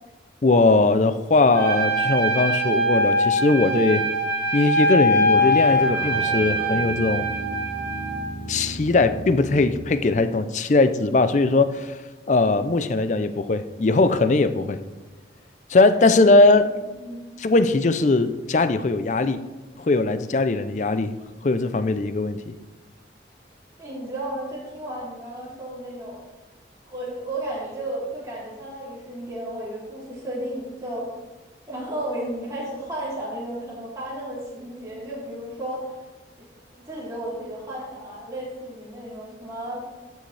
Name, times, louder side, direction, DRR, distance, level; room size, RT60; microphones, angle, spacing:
voice 1, 0.4-4.0 4.5-7.3 8.5-12.0 12.3-14.8 15.7-16.7 17.4-19.4 19.8-21.1 21.4-22.4, left 3 dB, 40° left, 11 dB, 0.4 m, -20 dB
Trumpet, 1.5-8.3, equal, 25° left, 2.1 m, -22 dB
sound 1, 5.3-10.0, right 1 dB, 75° right, 2.2 m, -35 dB
voice 2, 16.1-16.7 17.0-17.2 23.8-26.2 26.8-31.1 31.7-35.9 36.4-39.9, right 1 dB, 20° right, -7 dB, 2.9 m, -33 dB
12.5 x 6.4 x 3.3 m, 1.2 s
head